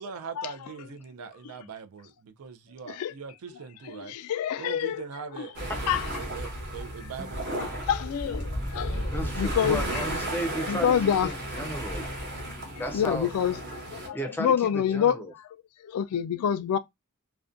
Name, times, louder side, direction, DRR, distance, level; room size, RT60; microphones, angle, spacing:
voice 1, 0.0-4.1 4.6-7.8, right 6 dB, 80° right, 0.4 m, -41 dB
voice 2, 3.9-5.0 5.4-5.5 5.9-6.1 7.5-10.0 10.6-11.3 12.0-12.5 12.9-15.2 15.8-16.8, left 8 dB, 85° left, 0.3 m, -27 dB
sound 1, 5.5-14.1, right 1 dB, 55° right, 1.0 m, -34 dB
voice 3, 9.1-10.9 11.2-12.0 12.8-13.3 14.1-15.3, equal, 10° left, 0.4 m, -34 dB
2.4 x 2.1 x 2.5 m
head